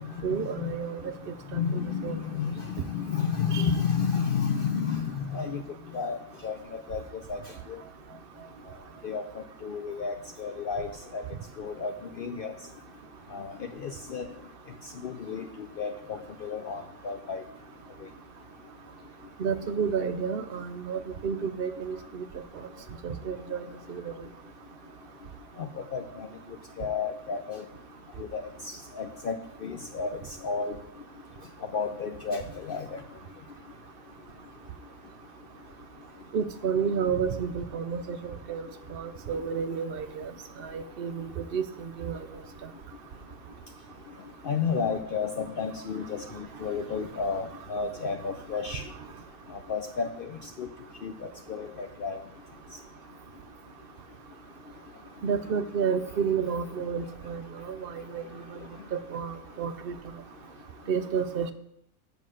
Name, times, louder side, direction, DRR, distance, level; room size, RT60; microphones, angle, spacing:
voice 1, 0.2-1.0 1.5-2.2 3.5-3.7 19.4-22.2 23.0-23.6 23.9-24.1 36.3-40.3 40.6-42.2 55.2-58.2 58.5-58.6 58.9-59.9 60.9-61.5, right 6 dB, 60° right, 9 dB, 0.6 m, -31 dB
voice 2, 1.5-5.6 5.9-6.2 6.4-6.6 6.9-7.0 7.3-7.4 9.0-9.2 9.6-10.9 11.1-11.2 11.6-11.9 12.2-12.5 13.3-13.5 13.8-14.3 15.0-15.5 15.8-17.4 25.6-26.3 26.8-27.6 28.2-28.4 29.0-29.4 29.6-30.7 31.7-32.9 44.5-48.8 49.7-50.3 50.6-50.7 51.0-51.1 51.5-52.2, left 6 dB, 75° left, 6 dB, 0.5 m, -31 dB
7.6 x 5.4 x 6.2 m, 0.77 s
omnidirectional pair, 1.5 m